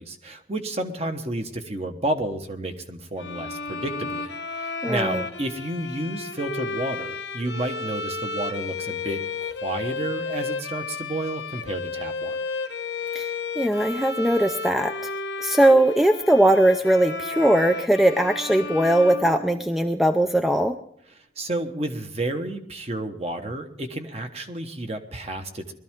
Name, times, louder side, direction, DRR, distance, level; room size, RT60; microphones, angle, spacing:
voice 1, 0.0-9.2 9.5-12.4 21.4-25.8, right 1 dB, 35° right, 6 dB, 1.2 m, -31 dB
sound 1, 3.2-20.0, left 4 dB, 80° left, 1.2 m, -33 dB
voice 2, 4.8-5.2 13.1-13.3 13.6-14.9 15.4-20.8, right 1 dB, ahead, 6 dB, 0.5 m, -20 dB
21.0 x 13.0 x 3.7 m, 0.67 s
head